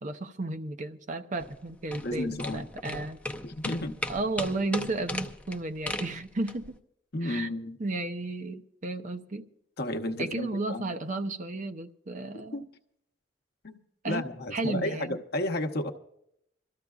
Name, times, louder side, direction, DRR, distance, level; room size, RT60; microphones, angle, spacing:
voice 1, 0.0-3.2 4.1-6.8 7.2-7.5 7.8-9.5 10.2-12.6 14.0-15.2, right 2 dB, 45° right, 0.7 m, -33 dB
sound 1, 1.4-6.7, left 1 dB, 5° left, 0.6 m, -37 dB
voice 2, 2.0-2.7 3.4-4.0 7.1-7.8 9.8-10.9 12.5-12.6 13.6-15.9, left 1 dB, 60° left, 0.9 m, -32 dB
26.0 x 13.5 x 2.4 m
head